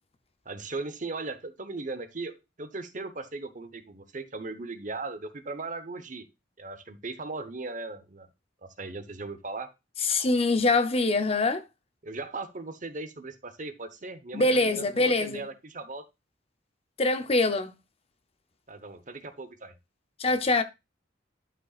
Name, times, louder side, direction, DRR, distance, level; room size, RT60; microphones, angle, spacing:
voice 1, 0.4-6.3 6.6-8.3 8.6-9.7 12.0-16.0 18.7-19.7, right 3 dB, 40° right, 1.0 m, -38 dB
voice 2, 10.0-11.6 14.3-15.5 17.0-17.7 20.2-20.6, left 2 dB, 30° left, 0.6 m, -24 dB
11.5 x 5.5 x 2.4 m
head